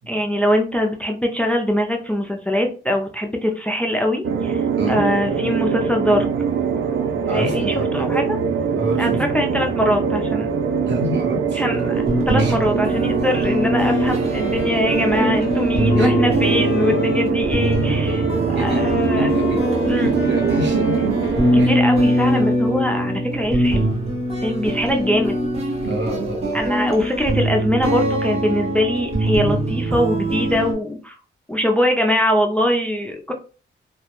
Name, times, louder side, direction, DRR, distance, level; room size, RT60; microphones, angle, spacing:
voice 1, 0.1-6.3 7.3-8.2 9.0-10.5 11.5-11.9 12.3-19.4 19.9-20.1 21.5-23.9 24.4-25.4 26.5-31.2 31.5-33.3, equal, 5° left, 3 dB, 0.3 m, -22 dB
sound 1, 4.2-21.7, right 6 dB, 85° right, 0.4 m, -23 dB
voice 2, 7.2-7.9 8.7-9.2 10.9-11.6 12.4-12.6 15.9-16.1 18.5-18.8 19.1-21.2 21.6-21.7 22.7-22.8 25.8-26.6, right 1 dB, 65° right, 1 dB, 0.8 m, -27 dB
sound 2, 11.7-30.7, right 1 dB, 30° right, 0.8 m, -22 dB
Wind instrument woodwind instrument, 13.8-22.5, left 6 dB, 70° left, 0.4 m, -32 dB
2.2 x 2.0 x 2.9 m, 0.37 s
wide cardioid pair, 105°, 20 cm